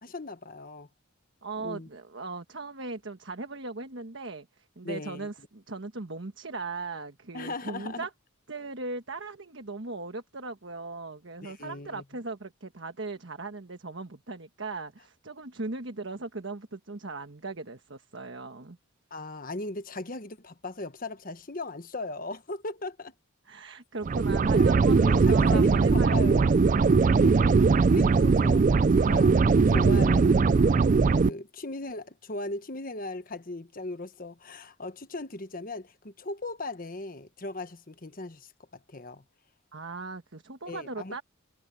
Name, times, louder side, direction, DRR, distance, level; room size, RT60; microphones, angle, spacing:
voice 1, 0.0-0.9 1.6-1.9 4.8-5.3 7.3-8.1 11.4-12.0 19.1-23.1 24.4-39.2 40.7-41.2, left 2 dB, 40° left, 1.2 m, -39 dB
voice 2, 1.4-8.1 8.5-18.8 23.5-26.6 39.7-41.2, right 3 dB, 60° right, 1.4 m, -38 dB
sound 1, 24.0-31.3, right 4 dB, 40° right, 0.3 m, -20 dB
head